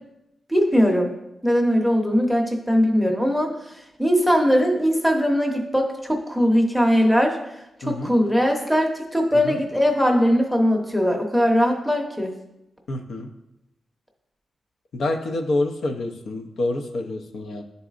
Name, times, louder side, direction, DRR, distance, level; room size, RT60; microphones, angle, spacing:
voice 1, 0.5-1.1 1.4-3.5 4.0-7.4 7.8-12.3, equal, ahead, 2 dB, 0.7 m, -20 dB
voice 2, 12.9-13.3 14.9-17.6, left 2 dB, 75° left, 4 dB, 0.6 m, -27 dB
10.0 x 4.0 x 2.5 m, 0.89 s
wide cardioid pair, 160°, 0 cm